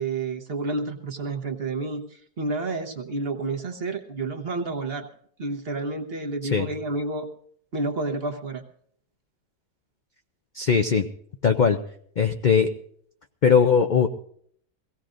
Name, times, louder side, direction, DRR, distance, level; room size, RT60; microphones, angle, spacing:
voice 1, 0.0-5.1 5.4-7.3 7.7-8.6, right 3 dB, 45° right, 5 dB, 1.2 m, -30 dB
voice 2, 10.5-11.1 11.4-11.8 12.2-12.7 13.4-14.1, left 6 dB, 65° left, 6 dB, 0.4 m, -19 dB
23.0 x 16.5 x 2.5 m, 0.63 s
omnidirectional pair, 1.6 m